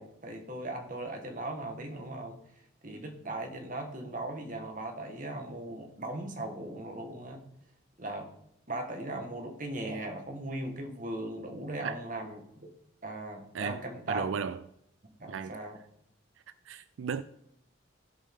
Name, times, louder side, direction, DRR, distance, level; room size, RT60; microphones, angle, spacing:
voice 1, 0.0-2.4 2.8-7.4 8.0-8.3 8.7-12.4 13.0-14.3 15.2-15.8, right 1 dB, 40° right, 1.4 m, -38 dB
voice 2, 14.1-14.6 15.3-15.6 16.7-17.2, right 6 dB, 85° right, 0.4 m, -34 dB
15.5 x 5.4 x 3.6 m
head